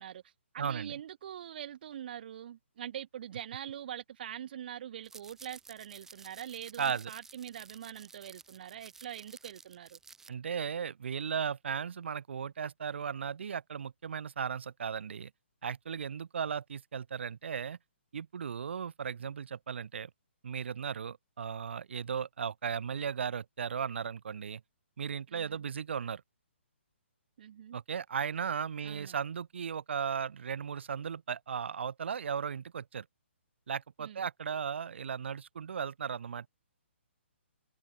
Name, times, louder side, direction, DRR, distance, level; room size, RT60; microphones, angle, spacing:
voice 1, 0.0-10.0 25.3-25.6 27.4-27.8 28.8-29.2 34.0-34.3, right 10 dB, 50° right, 4.2 m, -44 dB
voice 2, 0.6-1.0 6.8-7.1 10.3-15.3 15.6-17.8 18.1-20.1 20.4-24.6 25.0-26.2 27.7-33.1 33.7-36.5, right 7 dB, 65° right, 5.2 m, -36 dB
sound 1, 5.0-10.3, right 4 dB, 5° right, 4.4 m, -53 dB
hypercardioid pair, 155°, 7 cm